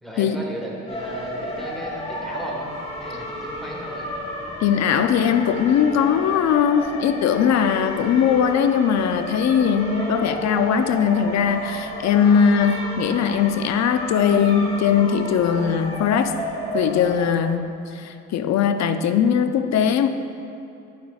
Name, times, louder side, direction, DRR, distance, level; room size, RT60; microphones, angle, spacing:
voice 1, 0.0-2.7 3.0-4.2, equal, ahead, -3 dB, 1.4 m, -35 dB
sound 1, 0.9-17.3, left 1 dB, 20° left, 1.3 m, -32 dB
voice 2, 4.6-16.3 16.7-20.1, left 7 dB, 65° left, 9 dB, 0.5 m, -20 dB
10.0 x 6.0 x 2.3 m, 2.7 s
cardioid pair, 90°, 30 cm